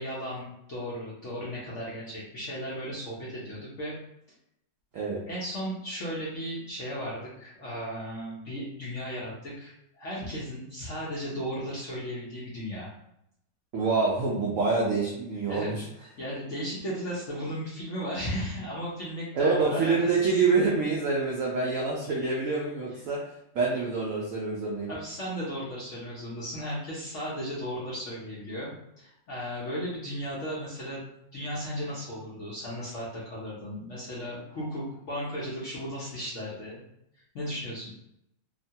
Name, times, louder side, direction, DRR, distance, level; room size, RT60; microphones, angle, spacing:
voice 1, 0.0-4.0 5.3-12.9 15.5-15.7 16.0-20.3 24.9-31.1 31.3-36.8 37.3-37.9, equal, 60° left, -7 dB, 0.8 m, -35 dB
voice 2, 13.7-15.8 19.3-23.2 23.5-24.9, right 4 dB, 75° right, -4 dB, 0.7 m, -26 dB
3.0 x 2.1 x 2.7 m, 0.80 s
omnidirectional pair, 2.0 m